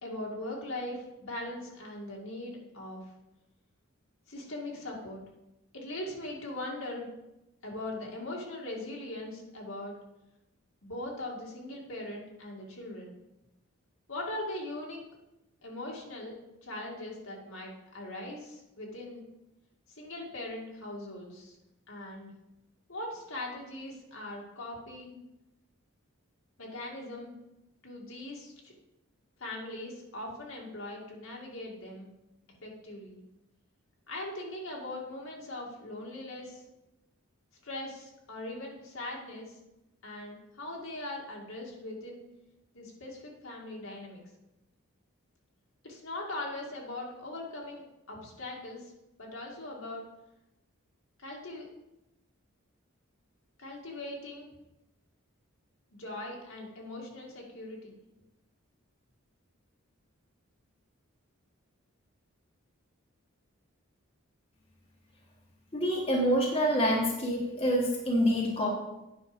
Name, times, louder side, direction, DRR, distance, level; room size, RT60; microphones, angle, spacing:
voice 1, 0.0-3.1 4.3-5.2 5.7-7.1 7.6-9.9 10.8-13.1 14.1-15.0 15.6-16.4 16.6-19.2 19.9-21.6 21.9-22.3 22.9-25.2 26.6-27.3 27.8-28.7 29.4-32.1 32.5-33.2 34.1-36.6 37.6-39.6 40.0-42.2 42.7-44.2 45.8-48.9 49.2-50.0 51.2-51.7 53.6-54.5 55.9-58.0, left 1 dB, 70° left, -2 dB, 2.3 m, -40 dB
voice 2, 65.7-68.7, equal, 25° left, -2 dB, 1.4 m, -26 dB
9.5 x 5.8 x 5.1 m, 0.93 s
head